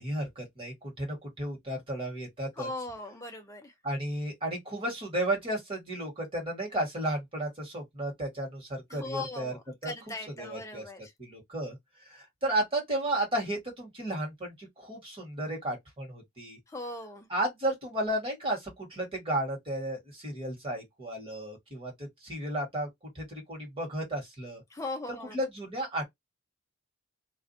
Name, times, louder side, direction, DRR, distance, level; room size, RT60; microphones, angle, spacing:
voice 1, 0.0-2.7 3.8-9.6 9.8-9.9 10.4-10.8 11.2-11.8 12.0-16.6 17.3-22.9 23.1-24.6 25.3-26.0, right 1 dB, 25° right, 1.4 m, -33 dB
voice 2, 2.6-3.7 8.9-11.1 16.7-17.3 24.7-25.4, left 2 dB, 15° left, 0.5 m, -39 dB
2.4 x 2.3 x 2.6 m
head